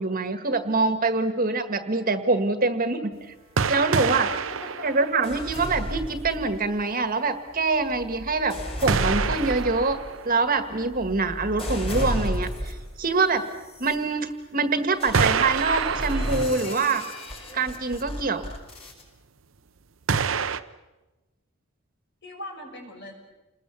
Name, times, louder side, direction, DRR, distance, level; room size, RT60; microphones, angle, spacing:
voice 1, 0.0-3.1 3.7-4.3 4.8-8.5 8.8-10.0 10.2-13.4 13.8-17.0 17.5-18.5, right 3 dB, 45° right, 8 dB, 1.6 m, -25 dB
sound 1, 3.6-5.7 6.2-6.3 8.9-10.8 13.6-13.7 15.1-17.1 17.4-17.5 20.1-20.6, right 6 dB, 70° right, 0.8 m, -27 dB
voice 2, 4.3-4.9 16.1-16.4 16.6-17.0 22.2-23.1, left 1 dB, 55° left, 2 dB, 5.8 m, -40 dB
sound 2, 5.2-6.8 7.5-13.0 13.6-13.9 15.0-19.0, equal, 30° left, 6.0 m, -33 dB
29.0 x 20.5 x 7.1 m, 1.1 s
head